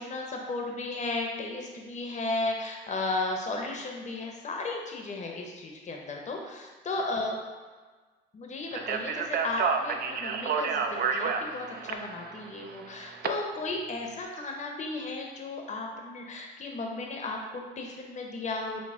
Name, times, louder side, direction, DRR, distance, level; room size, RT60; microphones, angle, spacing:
voice 1, 0.0-7.4 8.3-18.8, left 2 dB, 35° left, 1 dB, 0.7 m, -34 dB
Speech, 8.7-13.3, right 5 dB, 50° right, 0.4 m, -30 dB
6.1 x 2.1 x 3.6 m, 1.4 s
cardioid pair, 90°, 20 cm